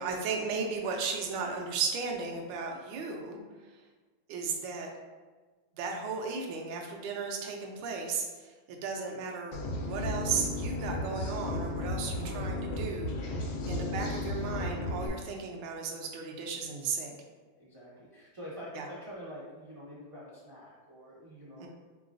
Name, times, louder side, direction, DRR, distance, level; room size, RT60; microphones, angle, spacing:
voice 1, 0.0-3.8 4.3-4.9 5.7-17.1 18.7-18.9 21.6-21.7, right 5 dB, 75° right, 1 dB, 1.2 m, -35 dB
sound 1, 9.5-15.1, left 2 dB, 90° left, 1.5 m, -34 dB
voice 2, 17.6-21.7, equal, 30° right, -8 dB, 0.5 m, -46 dB
4.0 x 3.8 x 2.5 m, 1.4 s
omnidirectional pair, 2.2 m